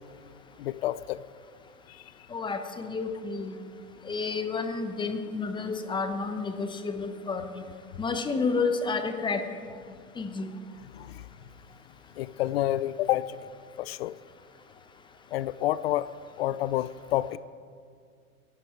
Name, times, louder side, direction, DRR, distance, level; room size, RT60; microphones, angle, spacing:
voice 1, 0.6-1.2 11.0-11.2 12.2-13.4 13.8-14.1 15.3-16.1 16.4-17.4, left 14 dB, 45° left, 17 dB, 0.5 m, -29 dB
voice 2, 2.3-3.6 4.0-7.6 8.0-9.4 10.2-10.5, left 4 dB, 10° left, 8 dB, 1.0 m, -30 dB
21.0 x 12.5 x 4.6 m, 2.1 s
hypercardioid pair, 120°, 44 cm